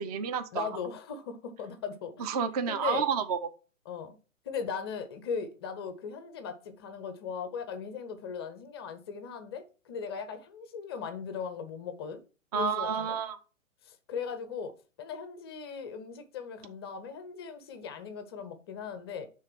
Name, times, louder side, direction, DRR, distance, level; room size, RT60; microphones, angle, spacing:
voice 1, 0.0-0.7 2.2-3.4 12.5-13.4, right 7 dB, 30° right, 0.5 m, -30 dB
voice 2, 0.5-2.3 2.7-3.0 3.9-4.2 4.5-12.2 12.5-13.2 13.8-19.3, left 6 dB, 20° left, 0.5 m, -38 dB
6.5 x 3.3 x 5.9 m
figure-of-eight pair, 120°, 40 cm